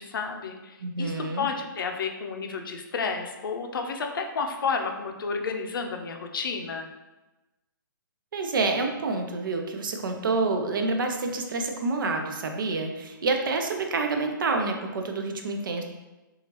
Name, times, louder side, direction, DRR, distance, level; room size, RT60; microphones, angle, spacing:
voice 1, 0.0-6.9, left 5 dB, 75° left, 4 dB, 0.5 m, -31 dB
voice 2, 0.8-1.5 8.3-15.8, right 3 dB, 70° right, 4 dB, 0.5 m, -28 dB
2.9 x 2.3 x 2.9 m, 1.1 s
hypercardioid pair, 150°, 11 cm